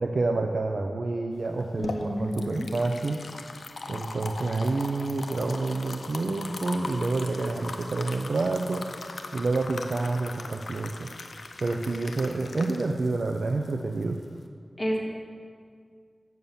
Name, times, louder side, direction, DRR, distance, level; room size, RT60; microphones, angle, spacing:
voice 1, 0.0-3.2 3.9-8.9 9.3-11.1 11.6-14.2, right 3 dB, 70° right, 3 dB, 0.5 m, -28 dB
sound 1, 1.4-14.4, left 3 dB, 80° left, 0.7 m, -40 dB
voice 2, 1.8-2.7 14.8-15.0, equal, 20° left, -3 dB, 2.0 m, -30 dB
7.9 x 7.0 x 7.2 m, 2.1 s
wide cardioid pair, 70°, 0 cm